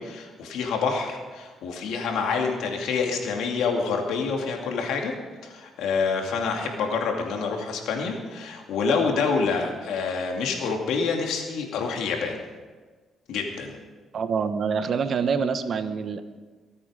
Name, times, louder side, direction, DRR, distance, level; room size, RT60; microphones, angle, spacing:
voice 1, 0.0-5.1 5.4-12.4 13.3-13.8, left 5 dB, 85° left, 2 dB, 2.5 m, -27 dB
voice 2, 14.1-16.2, right 6 dB, 55° right, 10 dB, 1.1 m, -26 dB
22.5 x 8.7 x 5.1 m, 1.4 s
cardioid pair, 90°, 0 cm